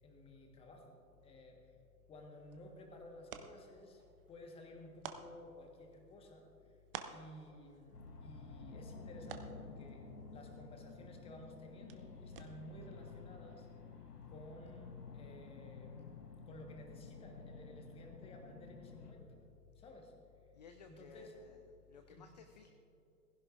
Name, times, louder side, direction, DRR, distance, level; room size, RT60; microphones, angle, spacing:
voice 1, 0.0-1.7 2.1-4.0 4.3-6.7 7.1-10.1 10.3-13.7 14.3-16.2 16.5-19.4 19.7-20.1 20.9-21.3 22.1-22.2, left 1 dB, 10° left, 2 dB, 1.4 m, -55 dB
sound 1, 2.1-12.9, right 7 dB, 35° right, 0.8 m, -55 dB
sound 2, 7.9-19.1, left 4 dB, 75° left, 1.5 m, -52 dB
voice 2, 20.5-21.6 21.9-22.7, left 6 dB, 30° left, 5 dB, 0.5 m, -57 dB
18.5 x 16.0 x 2.5 m, 2.7 s
figure-of-eight pair, 125°, 48 cm